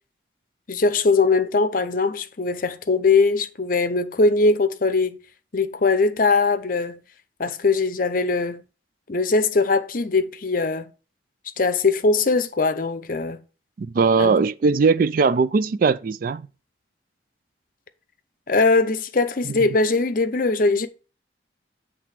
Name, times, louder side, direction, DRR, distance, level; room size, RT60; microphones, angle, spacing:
voice 1, 0.7-5.2 5.5-7.0 7.4-8.6 9.1-10.9 11.6-13.4 14.2-14.4 18.5-20.9, left 3 dB, 50° left, 0.7 m, -21 dB
voice 2, 13.8-16.5 19.4-19.7, right 4 dB, 50° right, 0.4 m, -20 dB
7.7 x 3.5 x 5.8 m
head